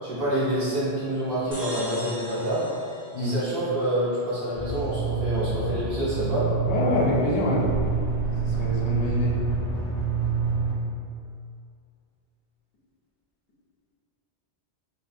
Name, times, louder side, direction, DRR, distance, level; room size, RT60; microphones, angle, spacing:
voice 1, 0.0-2.6 3.2-6.4, right 1 dB, 60° right, -11 dB, 1.1 m, -27 dB
sound 1, 1.5-4.1, equal, 20° right, 0.3 m, -40 dB
sound 2, 4.5-10.7, right 5 dB, 55° left, 0.6 m, -27 dB
voice 2, 6.7-7.6 8.4-9.4, left 2 dB, 80° left, -4 dB, 0.9 m, -25 dB
2.6 x 2.0 x 2.5 m, 2.4 s
omnidirectional pair, 1.1 m